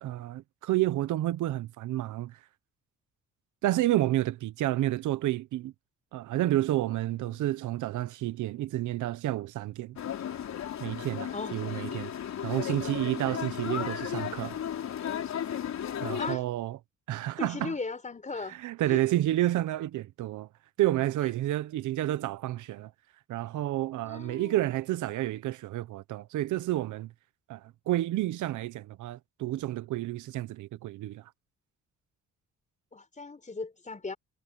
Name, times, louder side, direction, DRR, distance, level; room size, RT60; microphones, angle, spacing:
voice 1, 0.0-2.4 3.6-5.7 6.1-10.0 10.8-12.1 12.4-14.6 16.0-16.8 17.1-17.7 18.5-20.5 20.8-22.9 23.3-27.1 27.5-31.3, right 15 dB, 80° right, 0.9 m, -30 dB
voice 2, 6.9-7.6 11.3-11.5 16.2-16.4 17.4-18.6 18.9-19.0 24.0-24.6 32.9-34.2, left 4 dB, 25° left, 4.8 m, -38 dB
sound 1, 10.0-16.4, left 9 dB, 65° left, 3.8 m, -35 dB
cardioid pair, 90°, 30 cm